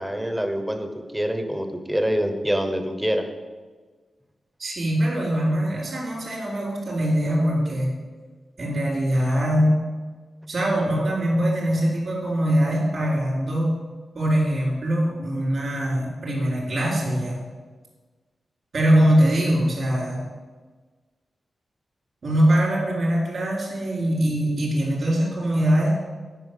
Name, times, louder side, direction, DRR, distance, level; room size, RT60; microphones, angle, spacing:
voice 1, 0.0-3.3, equal, 5° right, 6 dB, 0.9 m, -25 dB
voice 2, 4.6-7.9 8.6-9.8 10.5-13.7 14.1-17.4 18.7-20.3 22.2-26.0, equal, 50° right, -3 dB, 3.7 m, -22 dB
9.1 x 5.8 x 8.3 m, 1.4 s
wide cardioid pair, 155°, 0 cm